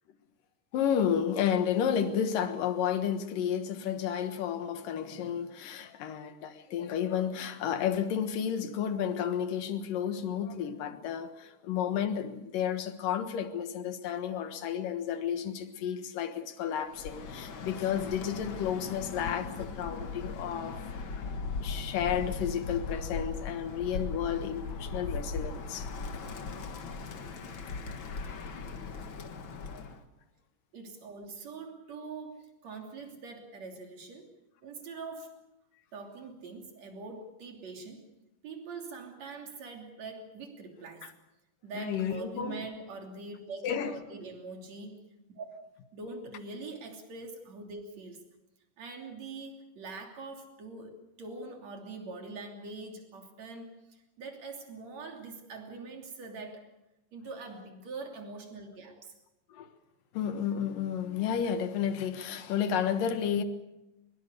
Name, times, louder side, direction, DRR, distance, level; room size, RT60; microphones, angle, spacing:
voice 1, 0.7-20.8 21.6-25.9 41.7-42.6 43.6-44.0 59.5-59.7 60.1-63.4, left 8 dB, 80° left, 3.1 m, -31 dB
Bird, 16.9-30.0, left 4 dB, 50° left, 1.7 m, -38 dB
voice 2, 30.7-34.3 34.6-35.4 35.9-38.1 38.4-41.1 41.6-45.0 45.4-45.5 45.9-48.3 48.8-56.7 57.1-59.1, right 3 dB, 55° right, 4.2 m, -43 dB
23.0 x 21.5 x 6.8 m
omnidirectional pair, 3.8 m